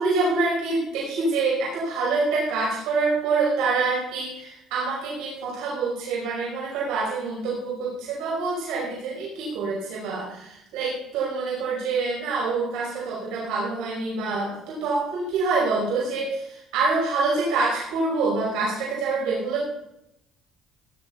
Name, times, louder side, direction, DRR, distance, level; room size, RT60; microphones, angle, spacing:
voice 1, 0.0-19.6, right 3 dB, 85° right, -5 dB, 5.6 m, -26 dB
18.0 x 11.0 x 4.1 m, 0.82 s
cardioid pair, 130°, 0 cm